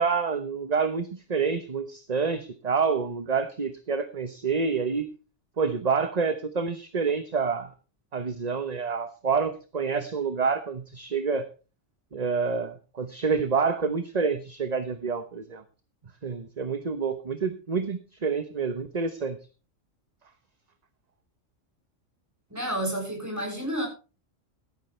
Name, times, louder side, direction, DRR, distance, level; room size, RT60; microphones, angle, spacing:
voice 1, 0.0-5.1 5.6-7.7 8.1-11.5 12.1-15.6 16.2-19.4, right 5 dB, 35° right, 10 dB, 1.0 m, -28 dB
voice 2, 22.5-23.9, right 1 dB, 15° right, 1 dB, 7.2 m, -30 dB
17.0 x 13.5 x 3.3 m, 0.34 s
omnidirectional pair, 1.3 m